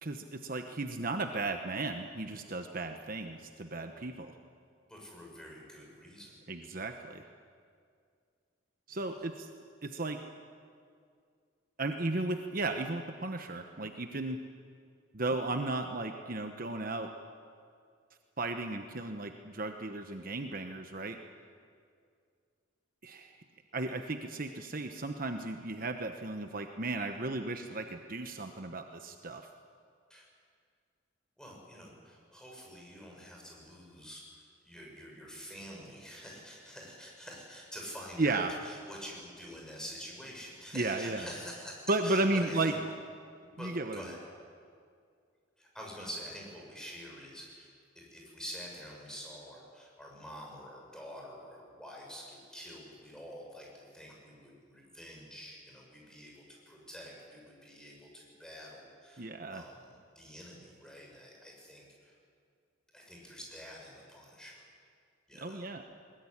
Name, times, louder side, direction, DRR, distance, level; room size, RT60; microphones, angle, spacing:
voice 1, 0.0-4.3 6.5-7.2 8.9-9.5 9.8-10.2 11.8-14.4 15.1-17.1 18.4-21.2 23.0-23.3 23.7-29.5 38.2-38.5 40.7-41.3 41.9-42.7 43.6-44.0 59.2-59.7 65.4-65.8, right 2 dB, 45° right, 6 dB, 1.1 m, -34 dB
voice 2, 4.9-6.4 8.9-9.1 30.1-30.3 31.4-42.9 43.5-44.2 45.6-47.7 47.9-62.1 62.9-64.6 65.3-65.7, equal, 5° left, -2 dB, 6.4 m, -47 dB
21.0 x 20.5 x 9.9 m, 2.2 s
head